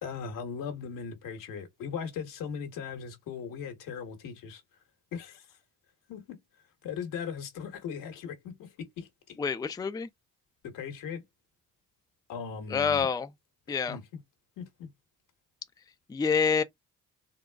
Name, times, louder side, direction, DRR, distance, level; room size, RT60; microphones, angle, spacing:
voice 1, 0.0-4.6 5.1-5.6 6.1-6.4 6.8-9.4 10.6-11.2 12.3-13.1 13.9-14.0 14.6-14.9, left 6 dB, 75° left, 1.3 m, -38 dB
voice 2, 9.4-10.1 12.7-13.3 13.7-14.0 16.1-16.6, left 5 dB, 10° left, 0.4 m, -27 dB
3.9 x 2.3 x 2.3 m
supercardioid pair, 60°, 32 cm